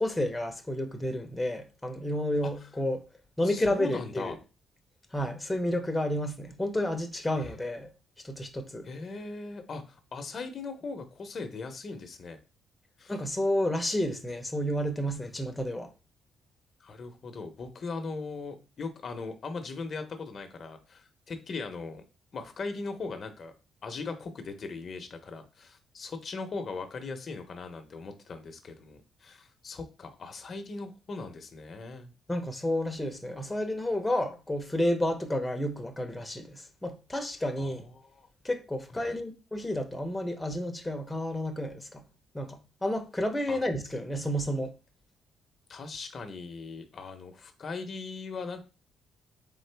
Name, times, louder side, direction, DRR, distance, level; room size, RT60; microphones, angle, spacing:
voice 1, 0.0-3.0 3.4-4.4 5.1-7.9 8.2-8.9 13.1-15.9 32.3-37.9 38.4-42.0 42.3-44.7, left 1 dB, 10° left, 0.7 m, -31 dB
voice 2, 3.4-4.4 7.4-7.5 8.8-12.4 13.0-13.2 16.8-22.0 22.3-23.5 23.8-32.1 37.6-38.3 39.0-39.2 43.5-43.6 45.7-48.6, left 4 dB, 50° left, 0.7 m, -39 dB
3.8 x 3.7 x 3.3 m
cardioid pair, 90°, 0 cm